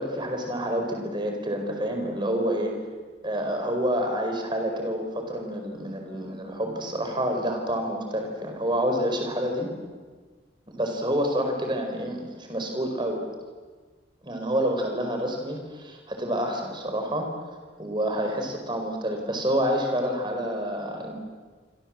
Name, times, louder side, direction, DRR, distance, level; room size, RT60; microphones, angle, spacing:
voice 1, 0.0-2.8 3.2-9.7 10.8-13.2 14.2-17.3 17.8-21.1, equal, 25° right, 3 dB, 4.8 m, -28 dB
28.0 x 26.0 x 7.7 m, 1.4 s
head